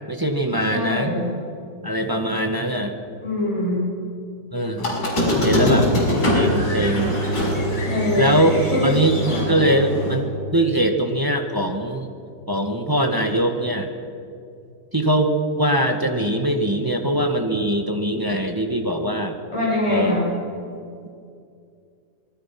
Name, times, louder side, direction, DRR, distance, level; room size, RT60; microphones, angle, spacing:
voice 1, 0.1-1.1 1.8-2.9 4.5-4.9 5.4-5.9 6.3-7.2 8.2-8.6 8.8-10.3 10.5-12.1 12.5-13.9 14.9-19.4 19.9-20.1, right 1 dB, 15° right, 4 dB, 1.5 m, -22 dB
voice 2, 0.7-1.3 3.2-3.9 5.6-5.7 7.8-8.3 8.7-8.8 9.2-9.5 19.5-20.3, left 2 dB, 15° left, -6 dB, 7.7 m, -24 dB
Squeak, 4.8-10.1, equal, 70° left, 6.7 m, -22 dB
26.5 x 20.5 x 6.0 m, 2.4 s
omnidirectional pair, 1.9 m